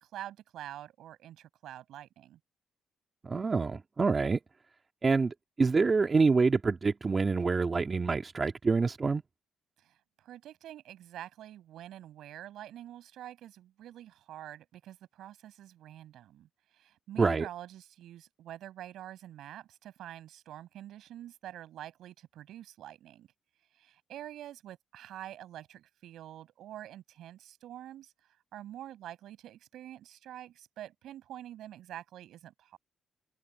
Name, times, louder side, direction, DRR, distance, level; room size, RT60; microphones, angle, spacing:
voice 1, 0.0-2.4 9.8-23.3 23.8-28.1 28.5-32.8, right 12 dB, 80° right, 5.8 m, -46 dB
voice 2, 3.2-4.4 5.0-9.2 17.2-17.5, right 4 dB, 30° right, 2.0 m, -26 dB
cardioid pair, 90°, 0 cm